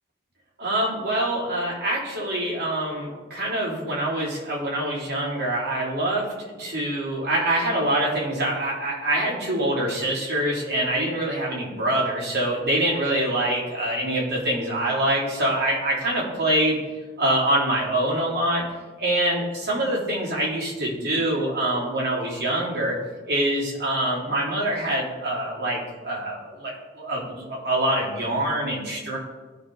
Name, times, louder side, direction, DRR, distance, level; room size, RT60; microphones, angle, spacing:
voice 1, 0.6-16.8 17.2-18.7 19.0-23.0 23.3-29.2, right 1 dB, 60° right, -5 dB, 3.5 m, -25 dB
15.5 x 5.5 x 3.8 m, 1.3 s
head